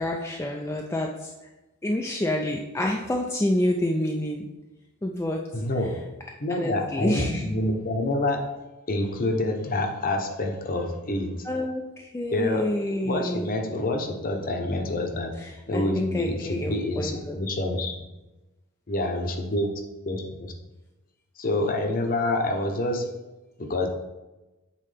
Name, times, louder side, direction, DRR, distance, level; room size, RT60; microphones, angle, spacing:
voice 1, 0.0-1.3 1.8-4.5 5.0-5.4 6.5-7.4 11.4-13.5 15.4-17.4, left 1 dB, 10° left, 0 dB, 0.3 m, -28 dB
voice 2, 5.5-5.9 6.4-8.4 8.9-11.5 12.3-12.7 13.0-15.3 15.7-18.1 18.9-19.7 20.1-20.5 21.4-23.1 23.6-23.9, left 2 dB, 40° left, 4 dB, 0.8 m, -27 dB
7.6 x 4.2 x 3.3 m, 1.1 s
head